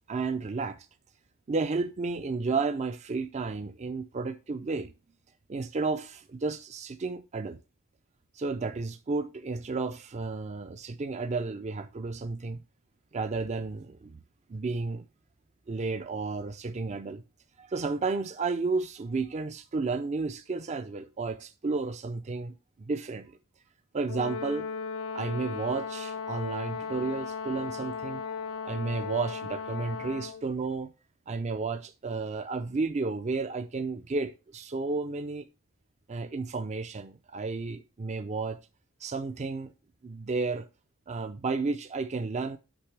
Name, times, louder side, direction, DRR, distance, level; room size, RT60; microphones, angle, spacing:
voice 1, 0.1-0.8 1.5-4.9 5.5-7.6 8.3-12.6 13.1-14.2 14.5-15.1 15.7-17.2 17.6-23.3 23.9-24.7 25.1-28.2 28.6-30.9 31.3-35.5 36.1-38.6 39.0-39.7 40.0-40.7 41.1-42.6, right 4 dB, 35° right, 0.4 m, -32 dB
Brass instrument, 24.1-30.5, left 5 dB, 70° left, 0.5 m, -36 dB
8.8 x 6.0 x 3.3 m
head